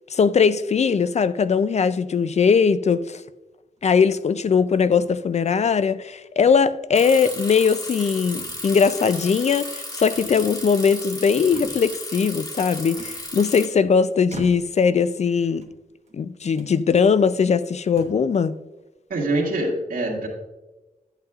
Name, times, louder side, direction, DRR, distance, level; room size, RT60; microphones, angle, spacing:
voice 1, 0.1-3.2 3.8-15.6 16.1-18.6, left 6 dB, 50° left, 0.4 m, -20 dB
sound 1, 3.8-4.2 5.0-5.7 6.5-6.7 7.1-7.2 7.7-8.1 8.4-9.1 10.1-10.9 11.2-12.0 12.9-13.8 14.3-14.9 15.5-16.2 16.5-16.8 17.4-17.5 17.8-18.3, right 3 dB, 50° right, 1.2 m, -44 dB
Bicycle, 6.9-13.7, left 1 dB, 25° left, 1.8 m, -34 dB
voice 2, 19.1-20.3, right 2 dB, 85° right, 2.0 m, -24 dB
11.5 x 8.9 x 2.4 m
wide cardioid pair, 105°, 15 cm